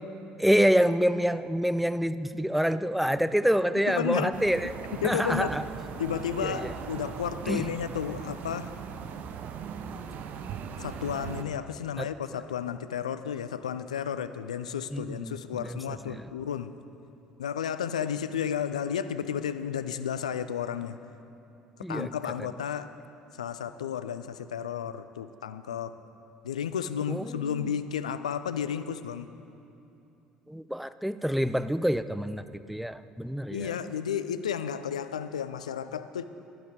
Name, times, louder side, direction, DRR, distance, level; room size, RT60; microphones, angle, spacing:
voice 1, 0.4-4.7 5.0-5.7 6.4-6.6 7.5-7.7 12.0-12.1 14.9-15.8 16.1-16.3 21.8-22.1 27.1-27.7 30.5-33.7, equal, ahead, 13 dB, 0.4 m, -27 dB
voice 2, 3.9-4.4 5.0-5.6 6.0-8.7 10.8-16.7 17.4-21.0 21.9-22.9 23.4-25.9 26.4-29.3 33.5-36.3, left 8 dB, 80° left, 12 dB, 0.3 m, -32 dB
sound 1, 4.3-11.4, right 7 dB, 50° right, 0.6 m, -39 dB
11.5 x 10.5 x 4.6 m, 2.8 s
figure-of-eight pair, 60°, 4 cm